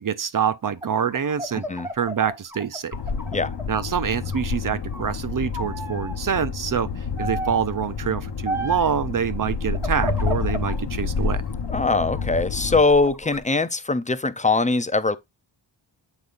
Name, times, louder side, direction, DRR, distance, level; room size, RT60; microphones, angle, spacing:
voice 1, 0.0-1.7 1.9-3.0 3.7-11.4, right 7 dB, 45° right, 0.6 m, -26 dB
sound 1, 0.8-3.9 4.3-5.1 5.5-6.2 7.2-7.7 8.5-9.0 9.7-10.8 11.3-12.2 12.7-13.4, equal, 5° right, 1.3 m, -33 dB
sound 2, 2.9-12.8, left 5 dB, 60° left, 0.9 m, -29 dB
voice 2, 11.7-15.2, left 3 dB, 15° left, 0.4 m, -21 dB
8.0 x 5.3 x 2.5 m
wide cardioid pair, 120°, 46 cm